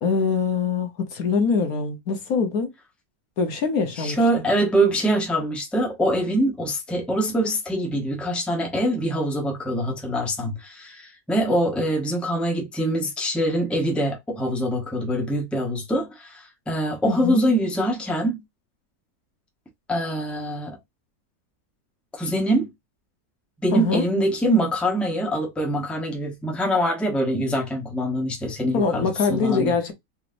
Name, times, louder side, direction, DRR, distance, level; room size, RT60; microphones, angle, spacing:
voice 1, 0.0-2.7 3.4-4.2 17.0-17.4 23.7-24.1 28.7-29.9, left 5 dB, 65° left, 1.4 m, -23 dB
voice 2, 3.9-18.4 19.9-20.8 22.1-22.7 23.6-29.7, right 1 dB, ahead, 1.0 m, -24 dB
4.1 x 3.0 x 2.5 m
omnidirectional pair, 1.7 m